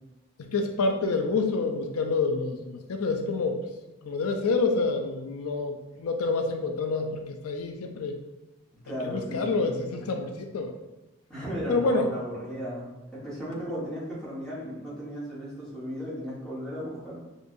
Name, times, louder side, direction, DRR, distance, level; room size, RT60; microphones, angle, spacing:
voice 1, 0.4-3.6 4.0-8.2 9.0-10.7 11.7-12.1, left 3 dB, 85° left, 5 dB, 0.4 m, -27 dB
voice 2, 8.8-10.1 11.3-17.2, equal, 5° left, -9 dB, 1.3 m, -36 dB
6.3 x 2.6 x 2.6 m, 1.0 s
head